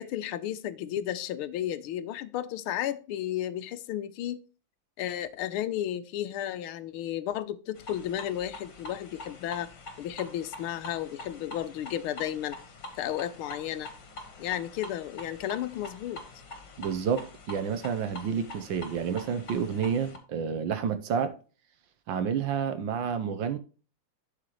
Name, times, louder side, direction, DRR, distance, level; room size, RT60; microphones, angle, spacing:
voice 1, 0.0-4.4 5.0-9.7 10.0-12.6 13.0-13.9 14.4-16.2, left 11 dB, 80° left, 1.6 m, -33 dB
sound 1, 7.8-20.2, left 2 dB, 60° left, 2.1 m, -45 dB
voice 2, 16.8-21.3 22.1-23.6, right 7 dB, 70° right, 1.4 m, -29 dB
11.5 x 5.0 x 3.0 m
omnidirectional pair, 2.3 m